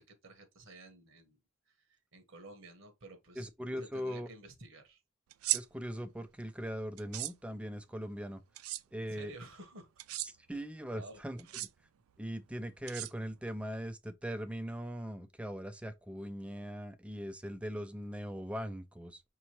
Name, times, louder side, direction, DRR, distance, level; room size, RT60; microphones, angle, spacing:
voice 1, 0.0-1.4 1.7-3.5 3.7-5.0 9.0-9.9 10.5-11.6, right 2 dB, 60° right, 1.1 m, -53 dB
voice 2, 3.4-4.3 5.5-8.4 8.9-9.3 10.2-11.5 12.2-19.2, equal, 5° right, 0.4 m, -40 dB
sound 1, 5.3-5.6 7.0-7.3 8.6-8.8 10.0-10.3 11.4-11.7 12.9-13.5, right 17 dB, 85° right, 0.3 m, -35 dB
5.3 x 2.9 x 2.8 m
head